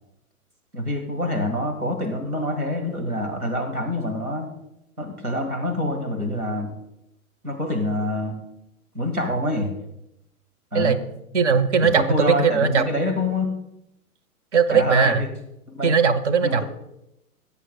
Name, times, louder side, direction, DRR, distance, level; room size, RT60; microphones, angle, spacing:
voice 1, 0.7-4.5 5.0-6.8 7.4-8.4 8.9-9.7 10.7-11.0 11.9-13.5 14.7-15.3 15.7-16.0 16.4-16.6, left 1 dB, 90° right, 4 dB, 1.8 m, -26 dB
voice 2, 11.3-12.8 14.5-15.2 15.8-16.6, right 5 dB, 55° right, 12 dB, 0.8 m, -19 dB
17.0 x 8.2 x 2.2 m, 0.84 s
figure-of-eight pair, 115°, 43 cm